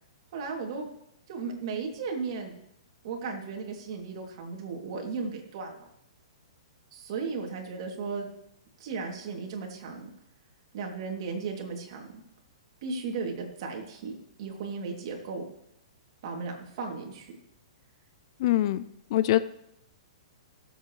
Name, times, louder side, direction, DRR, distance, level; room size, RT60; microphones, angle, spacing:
voice 1, 0.3-0.9 1.3-2.5 3.0-5.8 6.9-8.3 8.8-10.1 10.7-12.2 12.8-15.4 16.2-17.3, right 4 dB, 50° right, 1 dB, 2.9 m, -35 dB
voice 2, 18.4-18.8 19.1-19.4, left 14 dB, 50° left, 15 dB, 0.6 m, -23 dB
19.5 x 8.0 x 3.3 m, 0.76 s
hypercardioid pair, 145°, 3 cm